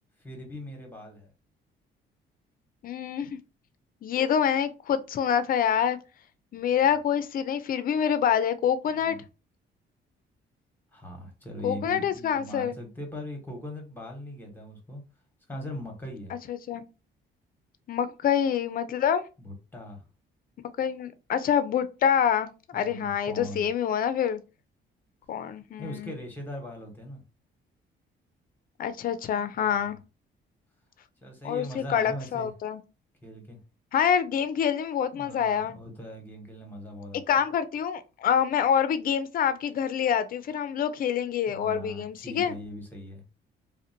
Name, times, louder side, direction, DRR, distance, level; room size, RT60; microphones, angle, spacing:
voice 1, 0.2-1.3 6.8-6.9 8.9-9.2 10.9-15.0 15.5-16.4 19.4-20.0 22.7-23.7 25.8-27.2 29.5-29.8 31.2-32.5 33.2-33.6 35.1-37.2 41.5-43.2, left 1 dB, 10° left, 1.1 m, -40 dB
voice 2, 2.8-3.4 4.0-6.0 6.5-9.2 11.6-12.7 16.3-16.8 17.9-19.2 20.8-24.4 25.3-26.1 28.8-30.0 31.4-32.8 33.9-35.8 37.3-42.5, left 8 dB, 45° left, 0.4 m, -26 dB
2.4 x 2.1 x 2.7 m
cardioid pair, 90°, 20 cm